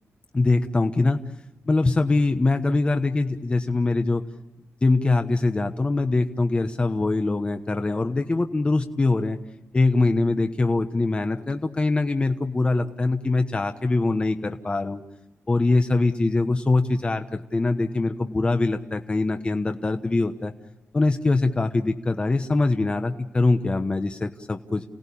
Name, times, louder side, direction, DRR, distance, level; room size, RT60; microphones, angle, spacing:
voice 1, 0.3-1.2 1.7-4.2 4.8-9.4 9.7-15.0 15.5-20.5 20.9-24.8, left 3 dB, 25° left, 6 dB, 1.1 m, -23 dB
29.5 x 18.0 x 8.6 m, 1.0 s
wide cardioid pair, 120°, 5 cm